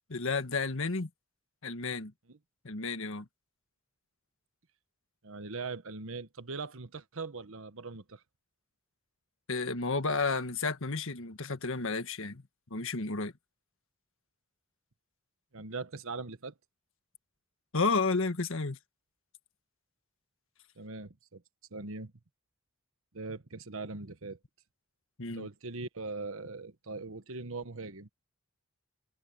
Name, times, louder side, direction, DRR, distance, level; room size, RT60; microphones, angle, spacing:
voice 1, 0.1-1.1 1.6-2.1 2.6-3.3 9.5-12.4 12.7-13.3 17.7-18.8 25.2-25.5, left 4 dB, 65° left, 1.6 m, -31 dB
voice 2, 5.2-8.2 15.5-16.5 20.8-21.4 21.7-22.1 23.1-24.4 25.3-28.1, right 3 dB, 65° right, 1.3 m, -40 dB
head